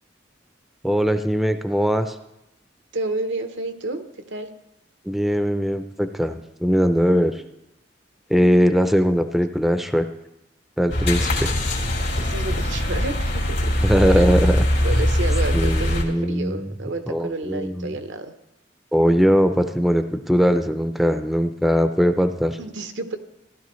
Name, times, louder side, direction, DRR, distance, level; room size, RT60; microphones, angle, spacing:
voice 1, 0.8-2.2 5.1-7.4 8.3-10.1 10.8-11.5 13.8-14.6 15.0-15.1 15.5-16.7 17.1-17.9 18.9-22.6, equal, ahead, 8 dB, 0.4 m, -20 dB
voice 2, 2.9-4.5 12.2-13.7 14.1-18.3 22.6-23.2, right 2 dB, 90° right, 7 dB, 0.9 m, -30 dB
sound 1, 10.9-16.0, left 1 dB, 75° left, 2.3 m, -21 dB
15.5 x 11.5 x 3.1 m, 0.88 s
head